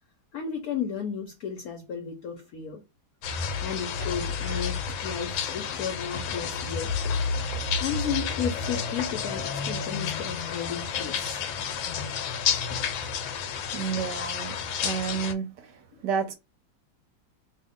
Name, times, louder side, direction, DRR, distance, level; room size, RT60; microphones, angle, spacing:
voice 1, 0.3-2.8 3.6-6.9 7.8-11.4 16.0-16.1, left 7 dB, 60° left, 1.0 m, -33 dB
sound 1, 3.2-15.3, left 6 dB, 85° left, 1.4 m, -30 dB
voice 2, 13.7-14.5 14.8-15.7 16.0-16.3, right 7 dB, 70° right, 1.2 m, -30 dB
2.9 x 2.8 x 3.5 m
omnidirectional pair, 2.1 m